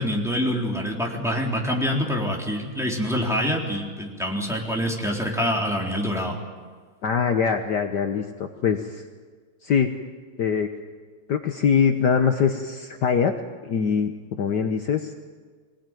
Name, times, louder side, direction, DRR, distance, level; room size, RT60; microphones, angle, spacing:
voice 1, 0.0-6.3, equal, ahead, -1 dB, 3.8 m, -26 dB
voice 2, 7.0-9.0 9.6-9.9 10.4-10.7 11.3-13.3 13.6-14.1 14.4-15.2, left 6 dB, 60° left, 6 dB, 1.6 m, -23 dB
25.0 x 18.5 x 9.2 m, 1.5 s
omnidirectional pair, 2.2 m